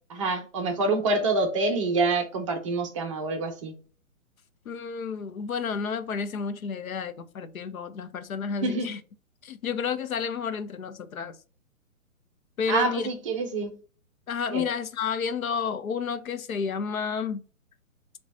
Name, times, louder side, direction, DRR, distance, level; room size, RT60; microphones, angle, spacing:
voice 1, 0.1-3.7 8.6-8.9 12.7-13.7 14.5-14.6, right 3 dB, 25° right, 0.6 m, -26 dB
voice 2, 4.7-9.0 9.4-11.4 12.6-13.1 14.3-17.4, left 6 dB, 75° left, 0.8 m, -31 dB
4.9 x 2.3 x 4.1 m
hypercardioid pair, 140°, 42 cm